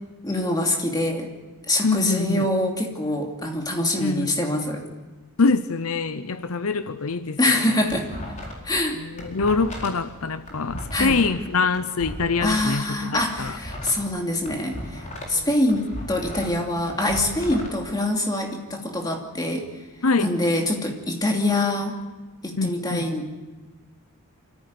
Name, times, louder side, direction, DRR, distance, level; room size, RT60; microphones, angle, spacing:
voice 1, 0.2-1.3 1.7-4.8 7.4-8.1 8.6-9.0 10.9-11.2 12.4-15.0 15.3-19.7 20.2-22.0 22.4-23.3, left 1 dB, 20° left, 2 dB, 2.6 m, -24 dB
voice 2, 1.8-2.5 4.0-4.3 5.4-7.8 8.9-13.6 15.3-15.5 20.0-20.3 22.6-23.1, left 4 dB, 75° left, 12 dB, 0.8 m, -24 dB
sound 1, 7.7-8.8 9.0-12.6 13.0-15.4 15.7-17.7, left 1 dB, 35° left, 4.6 m, -36 dB
25.5 x 14.5 x 9.5 m, 1.3 s
head